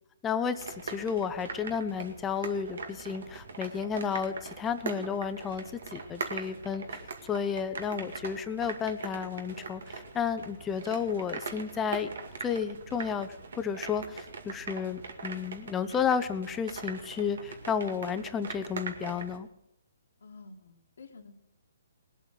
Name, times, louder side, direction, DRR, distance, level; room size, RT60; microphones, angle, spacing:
voice 1, 0.2-7.0 7.3-12.1 12.4-19.5, left 7 dB, 15° left, 11 dB, 0.7 m, -32 dB
sound 1, 0.5-19.4, right 4 dB, 70° right, 2.0 m, -41 dB
voice 2, 20.2-21.4, left 3 dB, 80° left, -1 dB, 1.8 m, -50 dB
19.5 x 8.2 x 8.0 m, 0.85 s
hypercardioid pair, 150°, 0 cm